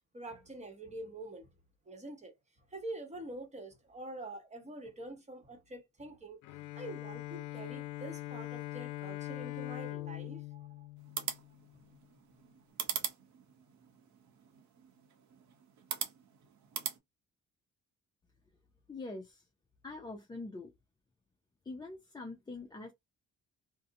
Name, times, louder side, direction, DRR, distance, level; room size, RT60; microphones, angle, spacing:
voice 1, 0.1-1.5 1.9-2.3 2.7-6.4 6.7-10.9, right 1 dB, 25° right, 1.0 m, -46 dB
Bowed string instrument, 6.4-11.8, left 16 dB, 80° left, 0.5 m, -42 dB
sound 1, 11.0-17.0, right 8 dB, 70° right, 0.7 m, -42 dB
voice 2, 18.9-19.4 19.8-20.7 21.6-22.9, left 3 dB, 15° left, 0.4 m, -44 dB
2.6 x 2.0 x 2.6 m
cardioid pair, 90°, 30 cm